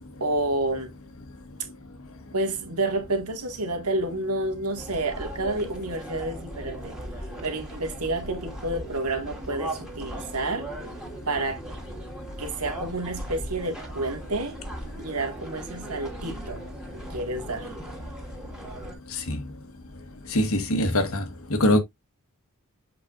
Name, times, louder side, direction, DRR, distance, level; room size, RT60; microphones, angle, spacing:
voice 1, 0.2-0.9 2.3-6.9 7.4-10.7 11.3-11.6 12.4-14.6 15.0-16.6 16.9-17.7, right 2 dB, 85° right, 2.3 m, -29 dB
sound 1, 4.8-19.0, right 1 dB, 5° right, 2.4 m, -38 dB
voice 2, 20.3-21.2 21.5-21.8, left 1 dB, 65° left, 1.5 m, -22 dB
7.8 x 5.2 x 2.6 m
head